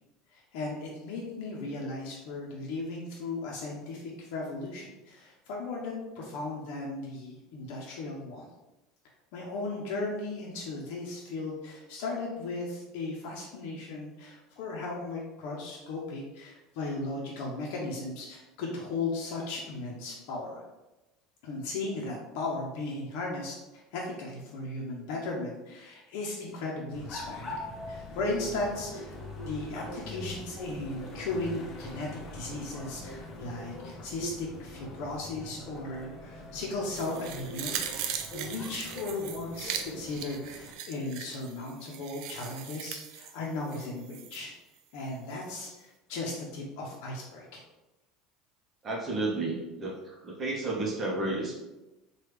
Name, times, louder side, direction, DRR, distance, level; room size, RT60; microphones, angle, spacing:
voice 1, 0.3-8.5 9.3-20.6 21.4-27.6 27.9-29.2 29.4-32.1 32.3-44.5 44.9-47.6, left 2 dB, 70° left, -2 dB, 0.6 m, -36 dB
sound 1, 26.9-40.8, left 1 dB, 30° left, 0.6 m, -42 dB
sound 2, 36.9-44.4 44.8-44.9, right 8 dB, 65° right, 0.4 m, -39 dB
voice 2, 48.8-51.5, right 2 dB, 30° right, -3 dB, 0.7 m, -32 dB
3.3 x 2.3 x 3.1 m, 1.0 s
supercardioid pair, 125°, 0 cm